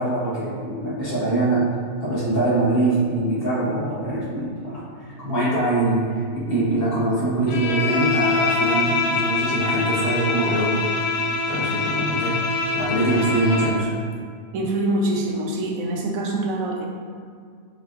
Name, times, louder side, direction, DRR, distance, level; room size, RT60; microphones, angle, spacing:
voice 1, 0.0-1.6 2.0-10.8 11.5-12.5 12.7-13.9, right 2 dB, 45° left, -9 dB, 1.4 m, -23 dB
Bowed string instrument, 7.5-13.8, left 4 dB, 85° left, 1.1 m, -24 dB
voice 2, 14.5-16.9, right 1 dB, 75° right, 0 dB, 1.1 m, -24 dB
5.4 x 4.0 x 2.4 m, 2.1 s
omnidirectional pair, 1.5 m